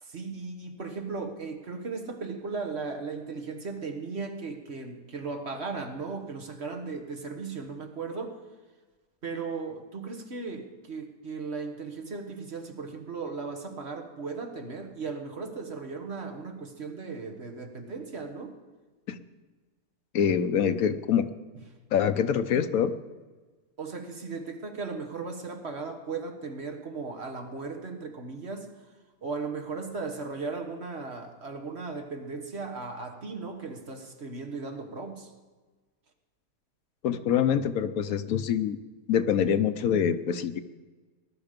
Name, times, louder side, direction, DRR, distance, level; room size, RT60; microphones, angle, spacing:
voice 1, 0.0-8.3 9.2-18.5 23.8-28.7 29.2-35.3, right 4 dB, 45° right, 5 dB, 1.6 m, -37 dB
voice 2, 20.1-21.3 21.9-22.9 37.0-38.8 39.1-40.6, left 8 dB, 75° left, 11 dB, 1.1 m, -25 dB
20.0 x 11.5 x 5.2 m, 1.3 s
omnidirectional pair, 1.5 m